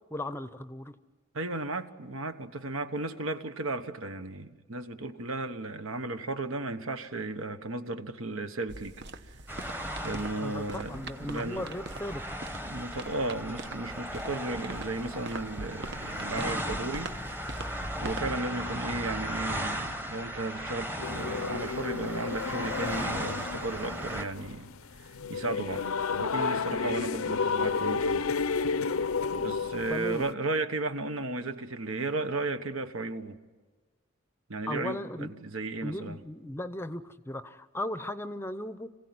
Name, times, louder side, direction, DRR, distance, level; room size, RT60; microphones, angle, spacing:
voice 1, 0.1-1.0 10.4-12.3 29.9-30.2 34.7-35.3 35.8-38.9, left 1 dB, 10° left, 0.7 m, -36 dB
voice 2, 1.3-8.9 9.3-9.4 10.0-11.7 12.6-17.1 17.4-17.6 18.0-24.7 25.0-25.9 26.1-28.3 29.4-33.4 34.5-36.2, right 2 dB, 75° right, 1.3 m, -34 dB
sound 1, 8.7-18.3, right 2 dB, 55° right, 1.0 m, -43 dB
sound 2, 9.5-24.3, equal, 10° right, 1.0 m, -37 dB
sound 3, 21.0-30.3, left 5 dB, 85° left, 0.7 m, -32 dB
26.0 x 16.0 x 9.6 m
head